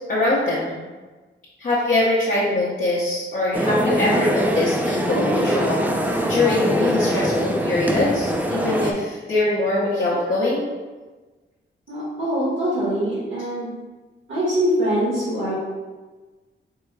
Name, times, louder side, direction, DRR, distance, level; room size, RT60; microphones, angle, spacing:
voice 1, 0.1-0.8 1.6-10.7, left 2 dB, 45° left, -9 dB, 0.9 m, -22 dB
sound 1, 3.5-8.9, right 1 dB, 10° right, 0.3 m, -23 dB
voice 2, 11.9-13.7 14.3-15.5, equal, 90° right, -9 dB, 1.4 m, -23 dB
4.6 x 2.1 x 4.7 m, 1.3 s
wide cardioid pair, 170°, 20 cm